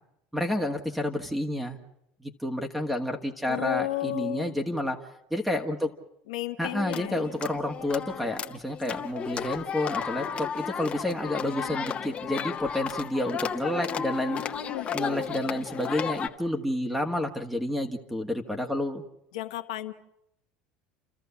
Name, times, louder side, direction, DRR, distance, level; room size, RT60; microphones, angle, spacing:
voice 1, 0.3-1.8 2.2-5.0 5.3-5.9 6.6-14.4 14.9-19.0, left 1 dB, 5° right, 4 dB, 1.9 m, -30 dB
voice 2, 3.5-4.5 6.3-7.3 14.2-15.6 19.3-19.9, left 15 dB, 85° left, 6 dB, 1.1 m, -34 dB
sound 1, 6.8-16.3, left 7 dB, 35° left, 1.4 m, -34 dB
30.0 x 13.5 x 7.2 m, 0.81 s
supercardioid pair, 95°, 3 cm